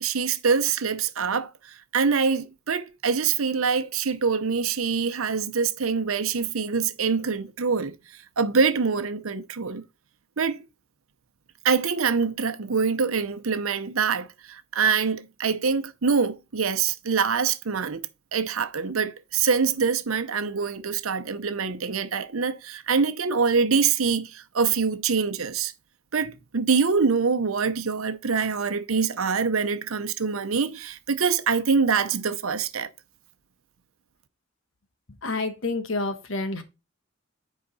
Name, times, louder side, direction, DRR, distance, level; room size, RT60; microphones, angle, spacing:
voice 1, 0.0-7.9 8.4-9.8 10.4-10.6 11.6-25.7 26.1-32.9, right 5 dB, 80° right, 0.8 m, -25 dB
voice 2, 35.2-36.6, left 3 dB, 65° left, 1.3 m, -28 dB
9.8 x 4.9 x 4.1 m
head